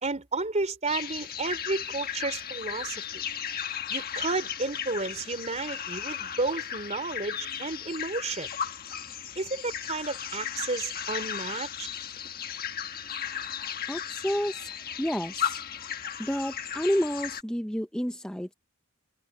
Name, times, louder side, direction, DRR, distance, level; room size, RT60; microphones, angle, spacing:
voice 1, 0.0-3.0 3.9-8.5 9.4-11.9, right 3 dB, 30° right, 3.6 m, -32 dB
sound 1, 0.9-17.4, left 8 dB, 45° left, 1.4 m, -35 dB
voice 2, 13.9-15.6 16.2-18.5, equal, 5° left, 0.8 m, -30 dB
head